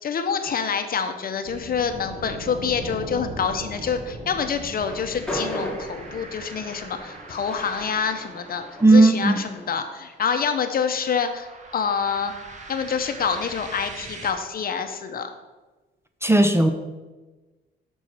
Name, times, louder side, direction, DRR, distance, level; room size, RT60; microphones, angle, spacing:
voice 1, 0.0-8.6 8.9-11.5 11.7-12.3 12.7-15.3, left 6 dB, 50° left, 7 dB, 0.8 m, -26 dB
sound 1, 1.4-14.3, right 2 dB, 35° right, 1.1 m, -40 dB
Train, 4.6-9.9, equal, 5° left, 2.2 m, -36 dB
voice 2, 8.8-9.4 16.2-16.7, right 2 dB, 15° right, 7 dB, 0.5 m, -15 dB
6.2 x 4.5 x 5.6 m, 1.2 s
cardioid pair, 90°, 20 cm